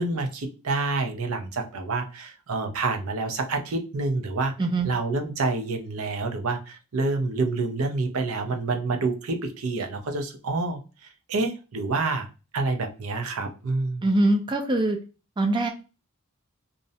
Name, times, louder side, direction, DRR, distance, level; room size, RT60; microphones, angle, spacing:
voice 1, 0.0-4.5 4.8-12.3 12.5-14.1, right 3 dB, 75° right, 5 dB, 0.5 m, -28 dB
voice 2, 4.6-4.9 14.0-15.0 15.4-15.7, right 2 dB, 20° right, 4 dB, 0.3 m, -22 dB
2.5 x 2.0 x 2.6 m, 0.31 s
head